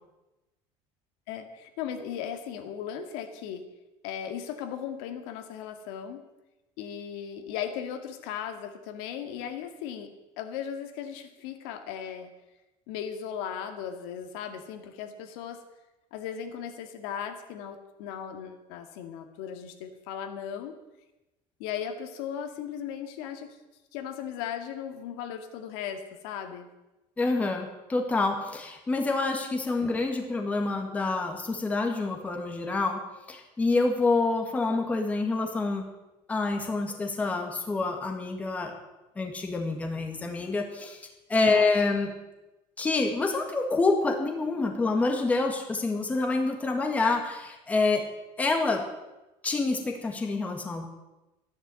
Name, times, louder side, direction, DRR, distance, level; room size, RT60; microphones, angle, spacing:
voice 1, 1.3-3.6 4.0-6.2 6.8-12.3 12.9-15.6 16.1-20.7 21.6-23.6 23.9-26.7 29.8-29.9, left 8 dB, 90° left, 6 dB, 2.1 m, -37 dB
voice 2, 27.2-33.0 33.3-35.9 36.3-38.7 39.2-41.0 41.3-42.1 42.8-48.0 48.4-48.8 49.4-50.8, left 3 dB, 10° left, 3 dB, 1.8 m, -27 dB
14.0 x 11.0 x 7.7 m, 1.0 s
cardioid pair, 175°, 12 cm